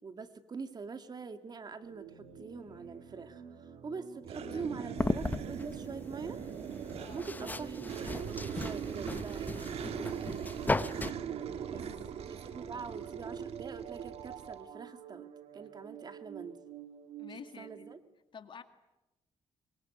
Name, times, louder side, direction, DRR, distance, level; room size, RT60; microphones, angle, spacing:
voice 1, 0.0-3.4 3.8-6.4 7.1-11.3 11.7-11.8 12.1-15.3 15.5-16.6 17.3-18.0, right 4 dB, 40° right, 9 dB, 2.1 m, -44 dB
sound 1, 1.8-18.0, right 9 dB, 90° right, 2.7 m, -50 dB
sound 2, 4.2-14.6, right 8 dB, 70° right, 1.8 m, -40 dB
voice 2, 4.4-5.0 7.0-7.3 11.8-12.1 12.7-12.8 17.2-17.9 18.3-18.6, left 6 dB, 50° left, 9 dB, 2.2 m, -50 dB
sound 3, 5.0-11.1, left 2 dB, 15° left, 1.0 m, -37 dB
24.0 x 24.0 x 9.5 m, 1.0 s
cardioid pair, 100°, 11 cm